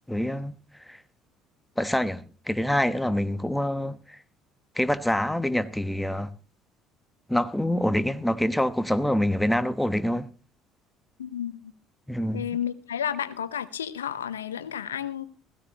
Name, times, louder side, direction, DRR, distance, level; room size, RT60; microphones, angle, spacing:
voice 1, 0.1-0.6 0.9-1.0 1.8-4.2 4.8-6.3 7.3-10.3 12.1-12.4, left 1 dB, 5° left, 1.2 m, -26 dB
voice 2, 11.2-11.7 12.3-15.3, left 9 dB, 85° left, 0.9 m, -32 dB
16.5 x 16.5 x 2.9 m
hypercardioid pair, 60°, 0 cm